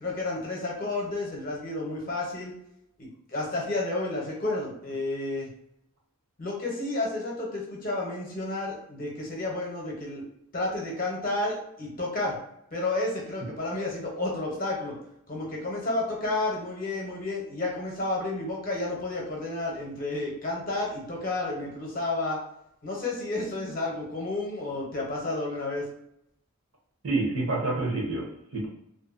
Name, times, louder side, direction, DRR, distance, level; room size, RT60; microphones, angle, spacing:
voice 1, 0.0-2.5 3.0-5.5 6.4-10.2 10.5-12.4 12.7-14.9 15.3-22.4 22.8-25.8, left 2 dB, 40° left, -2 dB, 0.7 m, -31 dB
voice 2, 27.0-28.7, right 2 dB, 60° right, -2 dB, 0.8 m, -28 dB
2.6 x 2.1 x 2.4 m, 0.76 s
head